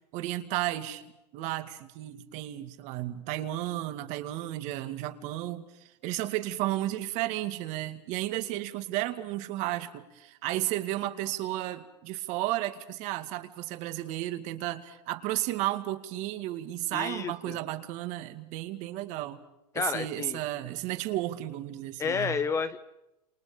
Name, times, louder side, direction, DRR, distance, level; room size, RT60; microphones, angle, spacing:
voice 1, 0.1-1.0 1.3-19.4 19.7-22.4, right 15 dB, 35° right, 2.3 m, -33 dB
voice 2, 16.9-17.6 19.7-20.4 22.0-22.8, left 6 dB, 15° left, 1.0 m, -31 dB
28.5 x 28.0 x 5.2 m
hypercardioid pair, 145°, 21 cm